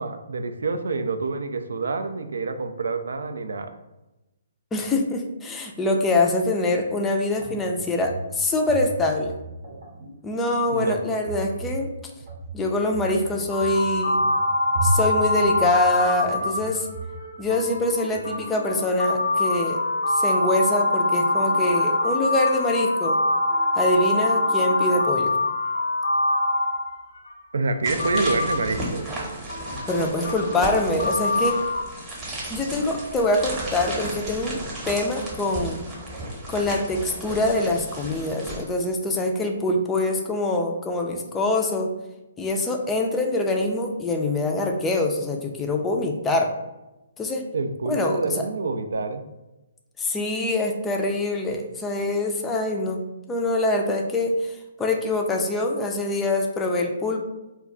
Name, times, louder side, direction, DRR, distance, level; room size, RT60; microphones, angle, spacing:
voice 1, 0.0-3.7 10.7-11.0 27.5-29.0 47.5-49.2, right 3 dB, 75° right, 8 dB, 0.3 m, -27 dB
voice 2, 4.7-9.3 10.2-11.9 12.5-14.2 14.8-16.9 17.4-19.8 20.1-23.2 23.8-25.3 29.9-31.6 32.5-34.6 34.9-35.8 36.5-41.9 42.4-46.5 47.2-47.4 47.9-48.2 50.0-57.2, left 2 dB, 10° left, 2 dB, 0.4 m, -24 dB
sound 1, 7.3-18.3, right 1 dB, 60° right, 0.7 m, -34 dB
sound 2, 13.5-27.3 28.0-31.8, left 2 dB, 75° left, 0.6 m, -24 dB
sound 3, 27.8-38.6, right 1 dB, 15° right, 0.9 m, -34 dB
2.2 x 2.2 x 3.7 m, 0.98 s
hypercardioid pair, 140°, 0 cm